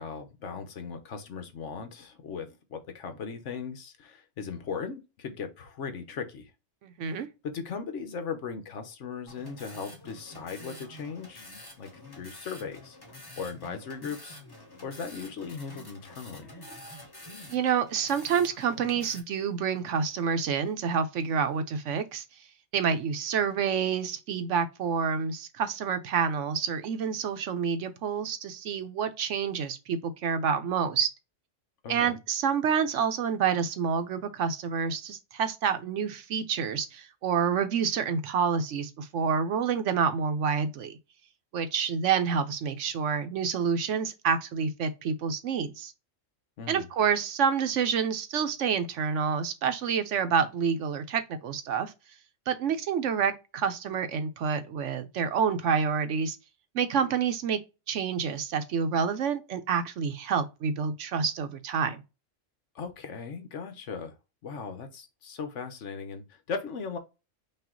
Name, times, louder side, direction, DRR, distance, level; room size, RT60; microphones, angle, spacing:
voice 1, 0.0-6.5 7.4-11.5 11.8-13.0 13.4-14.4 14.8-16.5 31.8-32.1 46.6-46.9 62.7-64.1 64.4-67.0, left 5 dB, 70° left, 1.2 m, -38 dB
voice 2, 6.8-7.3 17.5-22.2 22.7-31.1 31.9-40.9 41.5-45.9 46.7-51.9 52.5-56.4 56.7-57.6 57.9-62.0, right 6 dB, 75° right, 1.0 m, -28 dB
sound 1, 9.3-19.2, left 1 dB, 20° left, 1.2 m, -48 dB
5.6 x 2.5 x 3.7 m
omnidirectional pair, 1.3 m